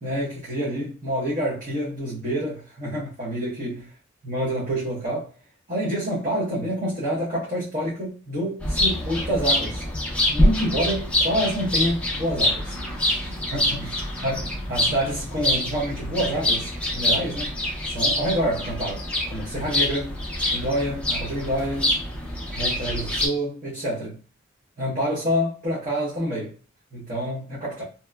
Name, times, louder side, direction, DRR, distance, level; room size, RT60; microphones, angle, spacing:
voice 1, 0.0-3.9 4.2-5.3 5.7-9.8 10.3-13.9 14.2-14.4 14.7-17.5 17.8-20.2 20.5-21.9 22.5-24.2 24.8-26.5 26.9-27.8, equal, 40° right, 0.8 m, -27 dB
sound 1, 8.6-23.3, left 1 dB, 5° left, 0.4 m, -25 dB
2.8 x 2.3 x 2.2 m
head